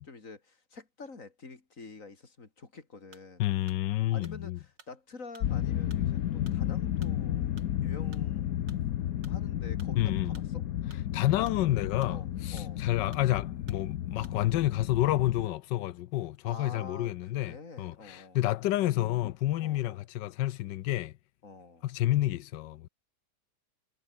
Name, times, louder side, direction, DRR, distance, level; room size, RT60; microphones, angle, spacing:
voice 1, 0.1-3.5 4.1-7.5 7.8-8.5 9.3-10.6 12.1-12.8 16.4-18.4 19.6-20.0 21.4-21.9, left 4 dB, 45° left, 3.5 m, -47 dB
sound 1, 3.1-14.7, right 4 dB, 85° right, 3.8 m, -58 dB
voice 2, 3.4-4.6 10.0-10.4 11.1-21.2 21.8-22.9, left 15 dB, 90° left, 1.3 m, -29 dB
sound 2, 5.4-15.5, left 11 dB, 60° left, 1.2 m, -32 dB
omnidirectional pair, 1.9 m